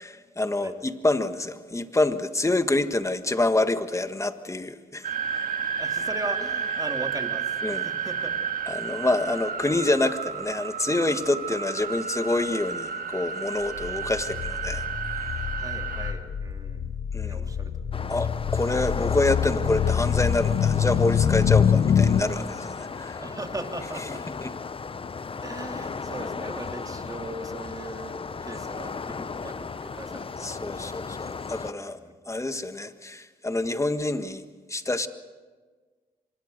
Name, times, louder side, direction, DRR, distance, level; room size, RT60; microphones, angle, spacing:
voice 1, 0.0-5.1 7.6-7.9 8.7-14.9 17.1-17.5 18.1-23.2 24.4-24.5 30.4-32.0 32.3-35.1, left 2 dB, 20° left, 9 dB, 1.5 m, -27 dB
sound 1, 5.0-16.1, right 6 dB, 55° right, 1.9 m, -31 dB
voice 2, 5.8-8.4 9.2-9.4 15.6-16.9 17.2-17.8 18.1-18.5 23.2-24.2 25.4-31.0 31.8-31.9, right 2 dB, 20° right, 4 dB, 2.8 m, -39 dB
sound 2, 13.8-22.2, left 8 dB, 75° left, 1.1 m, -25 dB
sound 3, 17.9-31.7, left 5 dB, 35° left, 0.7 m, -36 dB
25.5 x 20.5 x 6.6 m, 1.4 s
cardioid pair, 65°, 17 cm